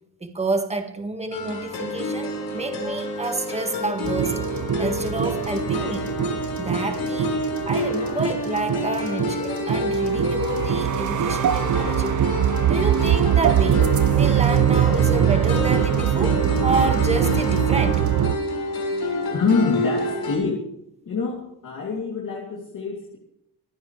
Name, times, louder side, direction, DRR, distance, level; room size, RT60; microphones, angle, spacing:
voice 1, 0.2-4.4 4.8-6.1 6.6-7.3 7.7-12.2 12.6-13.8 14.1-18.0, right 2 dB, 15° right, 5 dB, 1.8 m, -29 dB
sound 1, 1.3-20.4, left 1 dB, 90° left, 6.0 m, -28 dB
sound 2, 4.0-18.4, right 10 dB, 50° right, 0.6 m, -22 dB
voice 2, 19.3-20.7 21.0-23.2, left 4 dB, 55° left, -2 dB, 3.1 m, -25 dB
26.0 x 15.0 x 3.4 m, 0.77 s
wide cardioid pair, 165°, 37 cm